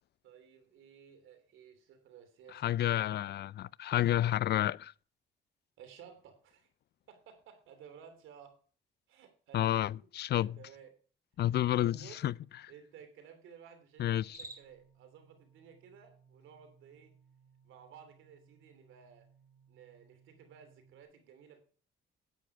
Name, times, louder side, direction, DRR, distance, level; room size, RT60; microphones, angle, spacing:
voice 1, 0.2-2.9 5.8-6.7 7.1-8.6 9.1-10.1 10.3-10.9 11.7-12.2 12.7-17.1 17.6-19.3 19.7-21.6, right 8 dB, 85° right, 3.1 m, -55 dB
voice 2, 2.5-4.9 9.5-10.5 11.4-12.3 14.0-14.4, left 12 dB, 55° left, 0.4 m, -30 dB
Cricket, 14.1-14.9, right 2 dB, 15° right, 4.9 m, -49 dB
sound 1, 14.3-21.0, right 7 dB, 25° left, 4.2 m, -65 dB
10.0 x 8.9 x 4.8 m
cardioid pair, 90°, 20 cm